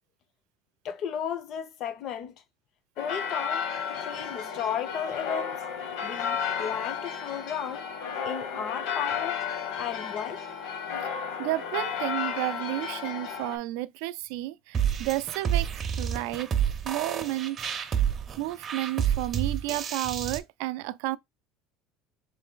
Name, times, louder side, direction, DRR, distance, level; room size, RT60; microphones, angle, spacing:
voice 1, 0.8-2.4 3.0-3.7 4.0-5.6 6.0-7.9 8.2-9.5 9.8-10.4, left 8 dB, 40° left, 0.5 m, -34 dB
sound 1, 3.0-13.6, left 7 dB, 65° left, 1.0 m, -33 dB
voice 2, 11.4-16.5 16.8-17.6 18.4-21.2, right 17 dB, 80° right, 0.3 m, -32 dB
sound 2, 14.7-20.4, right 8 dB, 25° right, 0.5 m, -29 dB
4.0 x 3.2 x 3.8 m
cardioid pair, 175°, 0 cm